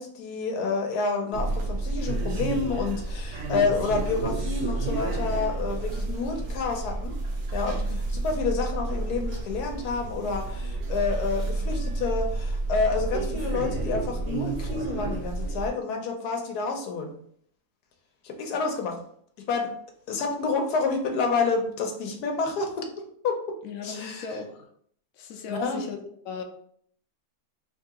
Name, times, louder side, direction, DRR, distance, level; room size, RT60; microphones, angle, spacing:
voice 1, 0.0-7.1 7.5-17.1 18.2-19.0 19.5-19.7 20.1-22.9 23.2-23.4 23.8-24.4 25.5-25.8, left 4 dB, 85° left, 3 dB, 1.3 m, -29 dB
sound 1, 1.3-15.7, right 2 dB, 55° right, 0.7 m, -30 dB
voice 2, 23.6-24.7 25.2-26.0 26.2-26.4, left 4 dB, 70° left, 3 dB, 1.0 m, -37 dB
3.4 x 2.7 x 3.6 m, 0.63 s
omnidirectional pair, 1.6 m